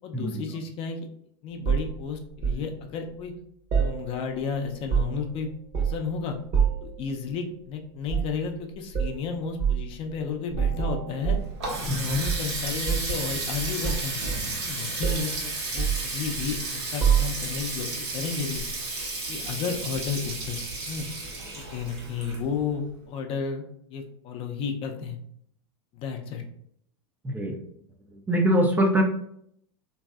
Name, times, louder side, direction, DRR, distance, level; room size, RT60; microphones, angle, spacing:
voice 1, 0.0-1.1 1.4-3.3 3.8-5.5 5.8-6.4 6.8-11.4 11.8-14.2 14.6-18.6 19.3-21.1 21.7-23.6 23.9-25.2 25.9-26.4, left 5 dB, 40° left, 3 dB, 0.5 m, -32 dB
sound 1, 1.6-2.6 3.7-4.4 4.7-5.3 5.7-6.1 6.5-6.9 8.0-8.4 8.9-9.2 9.6-9.8 10.5-12.0 12.2-13.2 13.8-14.7 15.0-15.3 15.8-16.6 17.0-17.6 18.5-18.7, right 7 dB, 45° right, 0.9 m, -26 dB
Water tap faucet, 11.2-22.8, right 2 dB, 75° right, 1.2 m, -33 dB
voice 2, 11.8-12.2 27.2-27.6 28.3-29.0, equal, 10° right, 2 dB, 0.4 m, -23 dB
3.0 x 2.6 x 2.4 m, 0.69 s
hypercardioid pair, 110°, 14 cm